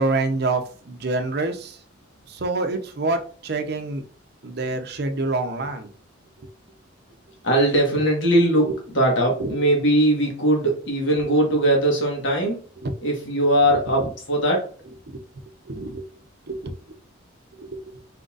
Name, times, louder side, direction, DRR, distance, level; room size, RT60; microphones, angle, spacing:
voice 1, 0.0-1.8 2.3-4.0 4.4-5.9 6.4-6.5 8.6-8.7 9.3-9.6 12.8-12.9 13.7-14.1 15.1-15.2 15.6-16.1 16.5-17.0 17.5-18.0, right 2 dB, 50° right, 7 dB, 0.6 m, -27 dB
voice 2, 7.4-8.7 8.9-12.6 13.0-14.7, right 1 dB, 65° left, 0 dB, 1.4 m, -20 dB
4.3 x 3.9 x 2.4 m, 0.43 s
head